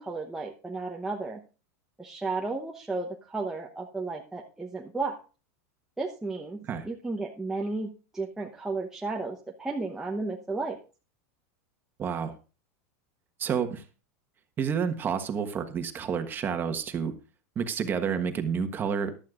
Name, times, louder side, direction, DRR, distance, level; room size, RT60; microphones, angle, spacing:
voice 1, 0.0-1.4 2.0-5.2 6.0-10.8, right 3 dB, 5° right, -1 dB, 0.9 m, -33 dB
voice 2, 12.0-12.3 13.4-13.8 14.6-17.1 17.5-19.1, right 6 dB, 25° right, 7 dB, 1.3 m, -29 dB
14.5 x 11.5 x 2.5 m, 0.34 s
supercardioid pair, 140°, 8 cm